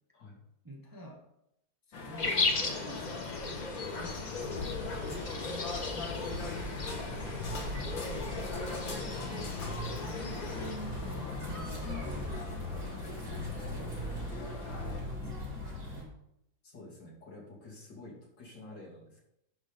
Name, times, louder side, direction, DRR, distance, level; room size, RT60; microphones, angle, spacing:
voice 1, 0.6-1.2 2.0-3.4 3.9-9.6 10.0-12.7 13.0-14.2 14.8-15.5, left 1 dB, 15° right, 0 dB, 1.1 m, -48 dB
sound 1, 1.9-15.0, left 4 dB, 85° left, 2.3 m, -42 dB
sound 2, 2.2-10.8, left 3 dB, 35° left, 0.8 m, -36 dB
sound 3, 4.5-16.0, left 1 dB, 60° right, 4.5 m, -40 dB
voice 2, 9.0-9.3 16.6-19.2, left 2 dB, 70° left, -4 dB, 3.5 m, -49 dB
11.0 x 4.7 x 5.3 m, 0.80 s
omnidirectional pair, 2.0 m